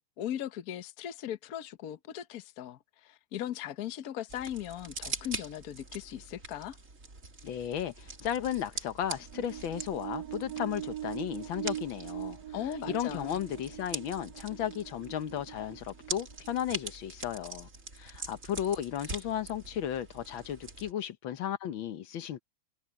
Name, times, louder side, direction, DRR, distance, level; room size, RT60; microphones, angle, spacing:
voice 1, 0.0-6.8 12.5-13.4, left 11 dB, 55° left, 1.3 m, -38 dB
sound 1, 4.3-20.9, right 3 dB, 40° right, 3.3 m, -44 dB
voice 2, 7.4-12.4 12.9-17.7 18.0-22.4, left 10 dB, 80° left, 1.8 m, -34 dB
sound 2, 9.1-16.8, right 12 dB, 70° right, 1.3 m, -42 dB
omnidirectional pair, 2.1 m